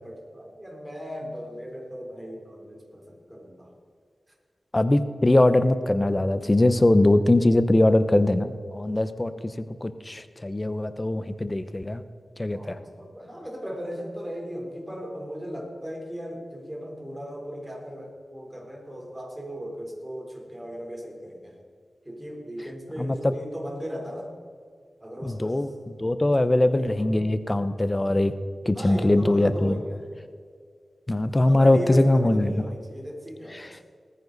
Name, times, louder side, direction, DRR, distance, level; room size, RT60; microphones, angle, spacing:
voice 1, 0.0-3.7 12.5-21.6 22.1-24.3 25.0-25.7 26.2-27.1 28.7-30.0 31.4-33.8, equal, 20° right, 0 dB, 3.8 m, -37 dB
voice 2, 4.7-9.3 9.8-12.0 12.4-12.8 23.0-23.3 25.3-25.7 26.0-28.3 28.7-29.8 31.1-32.5 33.6-33.7, left 1 dB, 30° left, 12 dB, 0.8 m, -21 dB
19.5 x 9.7 x 4.1 m, 2.1 s
cardioid pair, 50°, 0 cm